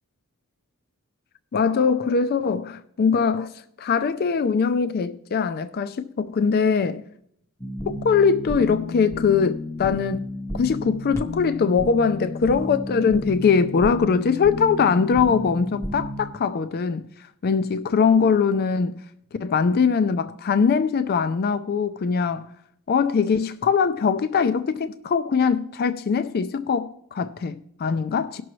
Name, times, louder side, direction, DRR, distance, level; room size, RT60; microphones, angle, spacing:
voice 1, 1.5-3.5 3.8-7.0 7.9-10.2 10.5-17.0 17.4-18.9 19.4-22.5 22.9-28.4, left 5 dB, 45° left, 0.4 m, -22 dB
sound 1, 7.6-16.3, left 2 dB, 15° left, 0.7 m, -32 dB
18.5 x 6.1 x 3.1 m
head